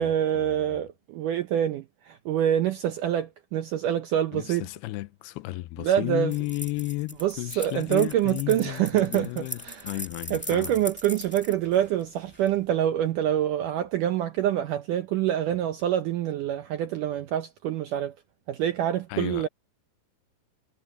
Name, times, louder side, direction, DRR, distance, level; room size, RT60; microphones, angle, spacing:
voice 1, 0.0-4.7 5.8-6.3 7.2-10.0 10.3-18.2 18.5-19.5, right 11 dB, 80° right, 1.9 m, -26 dB
voice 2, 4.3-10.7 19.1-19.5, left 20 dB, 80° left, 2.5 m, -33 dB
sound 1, 6.3-12.5, left 1 dB, 15° left, 0.3 m, -40 dB
omnidirectional pair, 4.8 m